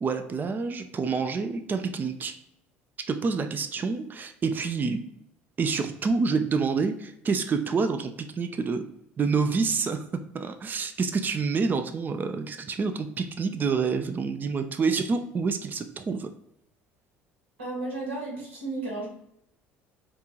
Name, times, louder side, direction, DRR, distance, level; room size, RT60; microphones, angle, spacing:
voice 1, 0.0-2.4 3.1-5.0 5.6-8.9 9.2-10.0 10.3-16.3, right 4 dB, 30° right, 9 dB, 0.4 m, -27 dB
voice 2, 17.6-19.1, right 2 dB, 90° right, -3 dB, 1.4 m, -33 dB
5.2 x 2.5 x 2.9 m, 0.74 s
hypercardioid pair, 70°, 6 cm